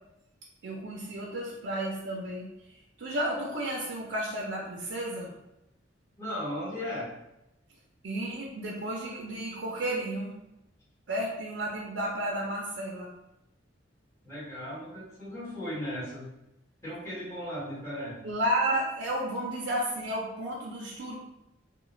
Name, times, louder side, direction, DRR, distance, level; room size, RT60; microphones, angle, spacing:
voice 1, 0.6-5.3 8.0-10.3 11.1-13.1 18.2-21.1, right 1 dB, 65° right, -3 dB, 0.4 m, -32 dB
voice 2, 6.2-7.1 14.2-16.3 16.8-18.2, equal, 15° left, -10 dB, 1.0 m, -36 dB
2.3 x 2.1 x 3.1 m, 0.90 s
head